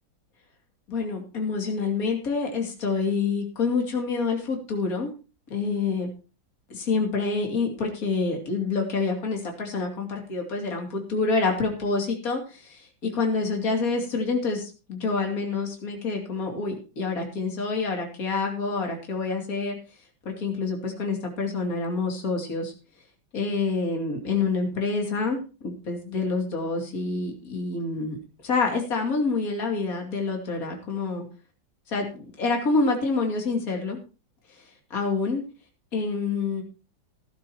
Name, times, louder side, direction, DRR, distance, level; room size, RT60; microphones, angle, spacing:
voice 1, 0.9-5.1 5.5-6.1 6.7-19.8 20.2-22.7 23.3-28.2 28.4-31.2 31.9-34.0 34.6-34.7 34.9-35.4 35.9-36.6, left 4 dB, 50° left, 1 dB, 3.0 m, -27 dB
15.5 x 12.0 x 2.9 m, 0.33 s
omnidirectional pair, 2.1 m